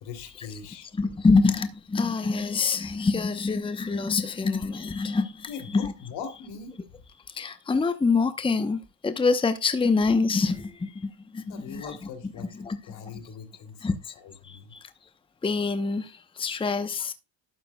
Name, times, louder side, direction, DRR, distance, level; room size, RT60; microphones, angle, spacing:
voice 1, 0.0-0.9 5.5-6.7 11.5-14.7, left 6 dB, 80° left, 2.7 m, -41 dB
voice 2, 0.9-5.9 7.3-12.0 12.4-12.8 13.8-14.1 14.4-14.8 15.4-17.1, left 4 dB, 15° left, 0.8 m, -26 dB
12.0 x 8.0 x 2.2 m
supercardioid pair, 80°, 38 cm